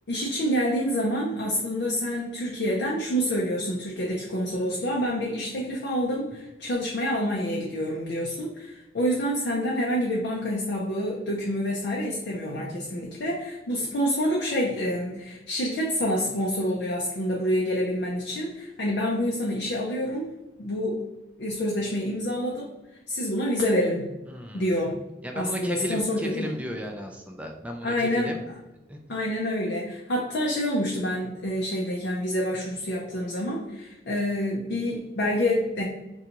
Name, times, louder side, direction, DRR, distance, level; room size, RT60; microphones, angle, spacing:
voice 1, 0.1-20.3 20.6-21.1 21.4-22.7 23.1-24.1 24.5-25.0 25.3-26.5 27.8-28.3 29.1-35.8, equal, 75° left, -2 dB, 0.5 m, -27 dB
voice 2, 24.3-24.8 25.2-28.4 28.9-29.0, equal, 10° right, 2 dB, 0.3 m, -34 dB
3.7 x 2.3 x 2.8 m, 0.99 s
head